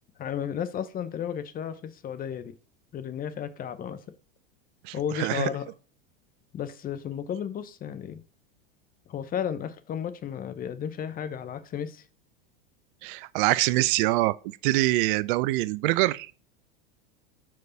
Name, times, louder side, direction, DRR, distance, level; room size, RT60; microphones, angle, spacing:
voice 1, 0.2-2.5 2.9-4.0 4.9-5.6 6.5-8.2 9.1-12.0, left 9 dB, 30° left, 0.7 m, -33 dB
voice 2, 4.8-5.5 13.0-14.4 14.6-16.3, right 19 dB, 55° right, 0.5 m, -24 dB
4.7 x 4.6 x 5.4 m
hypercardioid pair, 100°, 31 cm